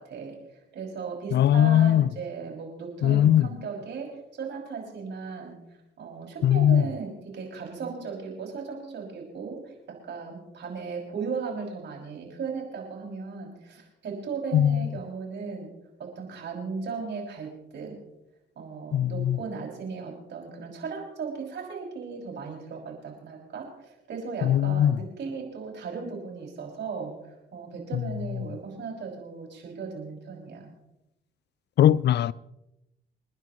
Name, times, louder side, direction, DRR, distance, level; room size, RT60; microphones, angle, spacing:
voice 1, 0.0-5.6 6.0-15.7 16.0-18.0 18.6-30.7, right 5 dB, 65° right, 6.1 m, -37 dB
voice 2, 1.3-2.1 3.0-3.5 6.4-6.8 14.5-14.9 18.9-19.4 24.4-25.0 31.8-32.3, left 11 dB, 60° left, 0.5 m, -20 dB
29.5 x 10.5 x 3.1 m
cardioid pair, 90°, 20 cm